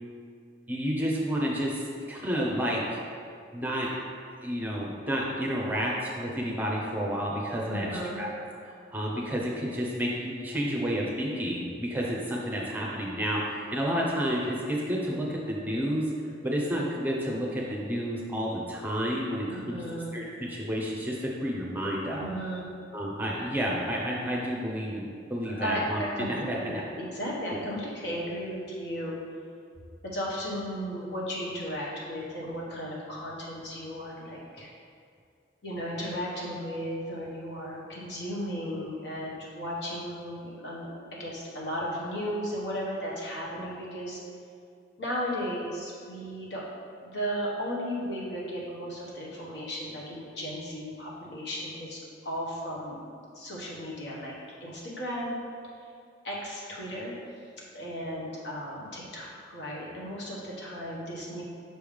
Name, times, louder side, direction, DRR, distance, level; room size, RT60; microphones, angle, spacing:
voice 1, 0.7-3.0 3.5-4.0 4.4-8.3 8.9-16.1 16.4-19.8 20.1-22.3 22.9-26.8, equal, 10° right, -3 dB, 0.8 m, -30 dB
voice 2, 7.7-8.2 19.5-20.1 22.2-22.7 25.4-29.2 30.1-34.7 35.6-40.9 41.2-44.2 45.0-46.6 47.0-53.0 53.3-54.3 54.6-55.3 56.2-57.1 57.7-61.4, equal, 65° left, -5 dB, 1.4 m, -35 dB
6.1 x 3.4 x 5.1 m, 2.3 s
head